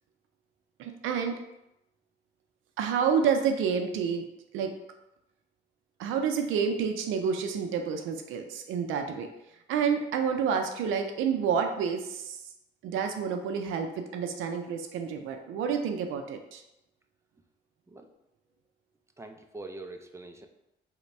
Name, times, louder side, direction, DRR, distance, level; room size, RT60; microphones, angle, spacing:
voice 1, 0.8-1.4 2.8-4.3 4.5-4.7 6.0-9.3 9.7-12.4 12.8-16.6, right 6 dB, 85° right, 5 dB, 0.4 m, -29 dB
voice 2, 19.2-20.5, right 2 dB, 15° right, 5 dB, 0.4 m, -43 dB
3.3 x 2.1 x 4.1 m, 0.89 s
cardioid pair, 90°, 20 cm